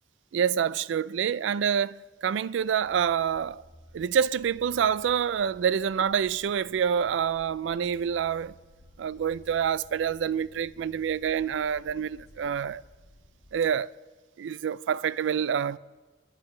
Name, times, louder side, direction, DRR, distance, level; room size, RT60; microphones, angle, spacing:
voice 1, 0.3-3.6 3.9-8.5 9.0-12.8 13.5-13.9 14.4-15.8, right 8 dB, 75° right, 0.3 m, -27 dB
sound 1, 2.8-13.7, equal, 60° left, 1.3 m, -55 dB
28.5 x 10.5 x 3.2 m
head